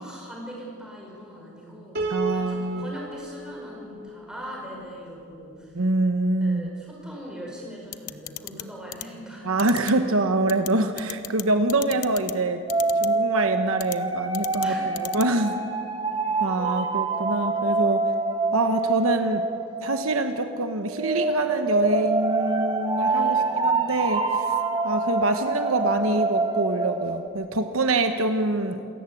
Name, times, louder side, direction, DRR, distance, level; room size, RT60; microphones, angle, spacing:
voice 1, 0.0-2.0 2.3-5.7 6.4-9.8 11.8-11.9 14.6-14.9 23.1-23.7, equal, 5° right, -3 dB, 5.7 m, -41 dB
Piano, 1.9-5.2, right 3 dB, 45° right, 2.7 m, -34 dB
voice 2, 2.1-2.9 5.7-6.7 9.4-12.6 13.0-15.6 16.4-18.0 18.5-19.4 19.8-24.5 24.8-28.8, right 2 dB, 70° right, 7 dB, 1.2 m, -25 dB
sound 1, 7.9-8.6 8.9-9.0 9.6-9.9 10.5-10.7 11.0-11.4 11.7-12.3 12.7-13.1 13.8-14.0 14.3-14.7 15.0-15.2, left 16 dB, 85° left, 0.8 m, -34 dB
sound 2, 12.7-20.6 20.9-27.3, right 3 dB, 20° right, 1.5 m, -26 dB
27.5 x 15.0 x 8.6 m, 2.5 s
head